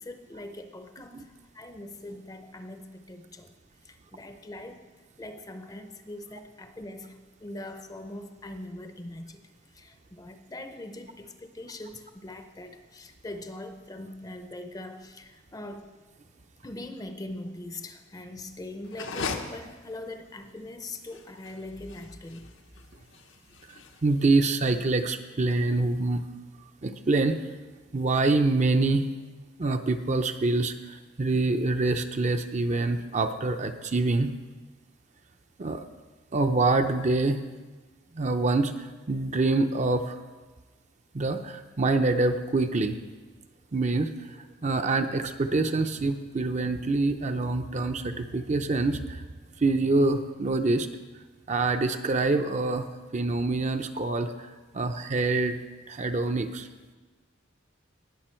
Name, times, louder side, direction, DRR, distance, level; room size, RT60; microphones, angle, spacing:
voice 1, 0.0-3.5 3.8-4.8 5.2-9.4 9.7-15.9 16.6-22.5, left 1 dB, 20° left, 8 dB, 0.6 m, -42 dB
sound 1, 18.8-25.0, left 4 dB, 75° left, 0.8 m, -40 dB
voice 2, 24.0-26.3 26.8-27.4 27.9-29.1 29.6-34.3 35.6-35.8 36.3-37.4 38.1-40.2 41.1-43.0 43.7-49.2 49.6-50.9 51.5-55.6 55.9-56.7, right 2 dB, 35° right, 7 dB, 0.5 m, -26 dB
18.5 x 6.8 x 4.4 m, 1.3 s
head